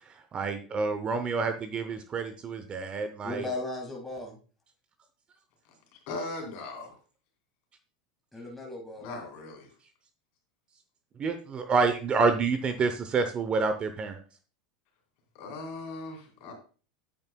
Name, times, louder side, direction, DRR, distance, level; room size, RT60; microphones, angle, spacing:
voice 1, 0.3-3.5 11.2-14.2, right 4 dB, 25° right, 9 dB, 0.7 m, -28 dB
voice 2, 3.2-4.4 8.3-9.1, left 2 dB, 5° left, -1 dB, 2.0 m, -36 dB
voice 3, 6.1-7.0 9.0-9.7 15.3-16.5, left 2 dB, 55° left, 2 dB, 3.3 m, -38 dB
9.0 x 8.6 x 2.3 m, 0.37 s
supercardioid pair, 135°, 4 cm